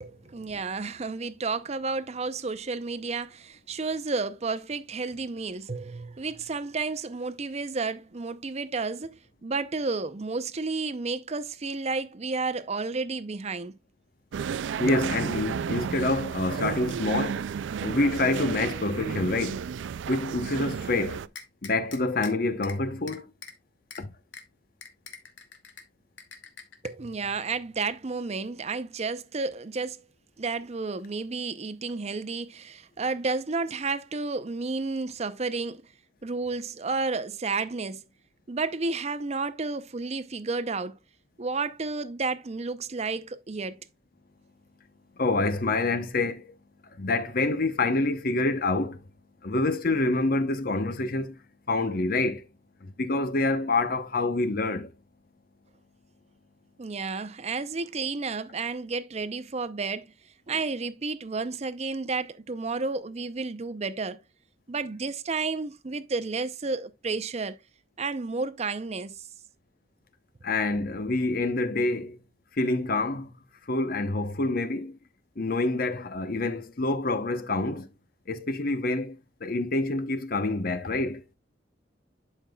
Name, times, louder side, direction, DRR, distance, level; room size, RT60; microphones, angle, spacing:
voice 1, 0.0-13.8 26.8-30.0 30.4-35.8 36.2-38.0 38.5-41.0 41.4-43.8 56.8-60.1 60.5-64.2 64.7-67.6 68.0-69.3, right 4 dB, 35° right, 0.6 m, -31 dB
sound 1, 14.3-21.3, right 7 dB, 85° right, 0.3 m, -32 dB
voice 2, 14.8-17.4 17.8-19.6 20.1-21.2 21.6-23.3 24.0-24.1 45.2-46.5 47.0-49.0 49.4-51.4 51.7-52.4 52.8-54.9 70.4-72.2 72.6-73.3 73.7-75.0 75.4-77.9 78.3-79.2 79.4-81.2, left 2 dB, 50° left, 0.8 m, -27 dB
sound 2, 21.3-22.3 22.6-22.8 23.1-23.5 23.9-24.0 24.3-24.4 24.8-25.8 26.2-26.9, left 6 dB, 85° left, 1.4 m, -43 dB
11.5 x 5.2 x 2.3 m
head